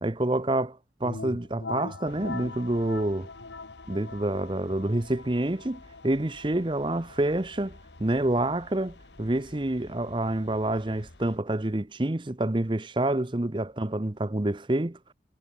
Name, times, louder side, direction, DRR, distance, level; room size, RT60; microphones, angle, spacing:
voice 1, 0.0-3.3 3.9-15.1, right 1 dB, 25° right, 0.8 m, -28 dB
sound 1, 1.0-10.6, left 3 dB, 90° left, 1.5 m, -43 dB
sound 2, 2.0-11.4, left 2 dB, 75° left, 1.7 m, -53 dB
head